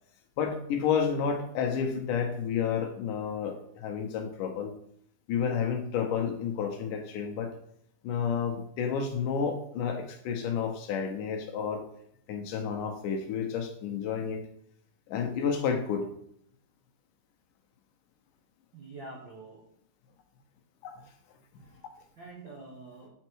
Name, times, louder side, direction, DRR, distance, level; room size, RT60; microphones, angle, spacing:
voice 1, 0.4-4.7 5.3-7.5 8.0-11.8 12.3-14.5 15.1-16.1 20.8-21.1, left 7 dB, 75° left, 4 dB, 2.3 m, -30 dB
voice 2, 18.7-19.6 21.6-23.1, right 3 dB, 80° right, -3 dB, 1.0 m, -47 dB
7.1 x 4.3 x 4.5 m, 0.69 s
omnidirectional pair, 4.1 m